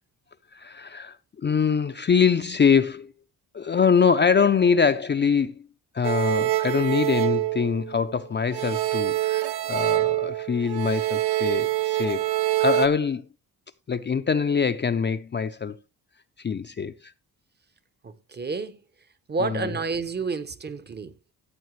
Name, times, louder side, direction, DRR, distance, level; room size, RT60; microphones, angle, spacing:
voice 1, 0.5-1.2 1.4-3.1 3.5-5.5 5.9-12.3 12.6-13.2 13.9-15.8 16.4-16.9 19.4-19.7, left 6 dB, 30° left, 0.5 m, -23 dB
sound 1, 6.0-8.2 8.5-12.9, right 16 dB, 90° right, 0.9 m, -25 dB
voice 2, 18.0-18.8 19.3-21.3, right 4 dB, 25° right, 0.7 m, -30 dB
14.0 x 8.1 x 3.1 m
wide cardioid pair, 165°, 38 cm